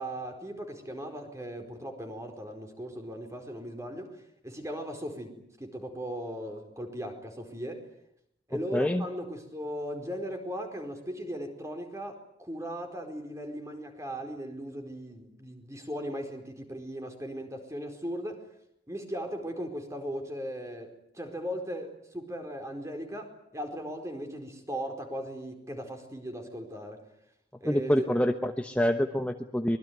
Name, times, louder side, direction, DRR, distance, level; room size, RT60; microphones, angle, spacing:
voice 1, 0.0-7.9 8.5-18.4 18.9-27.0 27.6-27.9, equal, 15° right, 5 dB, 4.6 m, -38 dB
voice 2, 8.7-9.0 27.6-29.8, equal, 5° left, 6 dB, 1.0 m, -26 dB
25.0 x 22.0 x 9.6 m, 0.74 s
head